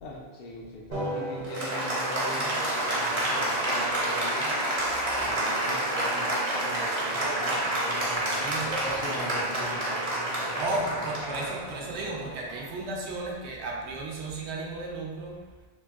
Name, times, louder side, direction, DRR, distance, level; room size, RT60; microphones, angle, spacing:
voice 1, 0.0-4.5 5.2-10.8, left 1 dB, 65° left, -2 dB, 0.8 m, -40 dB
Applause, 0.9-12.8, right 1 dB, 45° right, 0.6 m, -29 dB
voice 2, 8.1-8.8 10.6-15.4, right 2 dB, 85° right, -1 dB, 0.9 m, -34 dB
3.0 x 2.6 x 2.3 m, 1.2 s
omnidirectional pair, 1.1 m